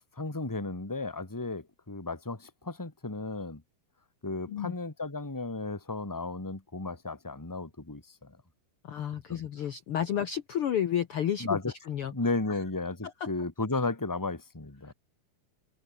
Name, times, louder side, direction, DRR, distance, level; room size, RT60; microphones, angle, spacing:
voice 1, 0.2-3.6 4.2-8.4 9.3-9.4 11.4-11.7 12.1-14.9, left 3 dB, 5° left, 1.7 m, -34 dB
voice 2, 8.8-11.6 11.9-12.1 12.5-12.6 13.0-13.1, left 9 dB, 75° left, 1.3 m, -31 dB
omnidirectional pair, 4.3 m